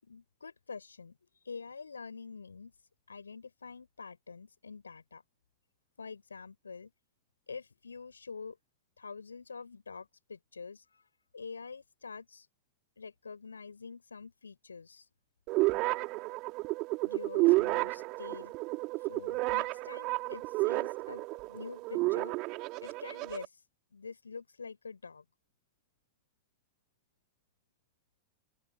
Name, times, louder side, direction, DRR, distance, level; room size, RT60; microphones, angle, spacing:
voice 1, 0.0-1.2 1.4-2.7 3.1-5.2 6.0-6.9 7.5-8.6 9.0-11.1 11.3-12.5 13.0-15.1 17.0-18.5 19.0-22.4 22.8-23.6 23.9-25.2, left 5 dB, 75° left, 7.7 m, -46 dB
sound 1, 15.5-23.4, right 23 dB, 40° right, 3.4 m, -31 dB
open air
figure-of-eight pair, 90°, 0 cm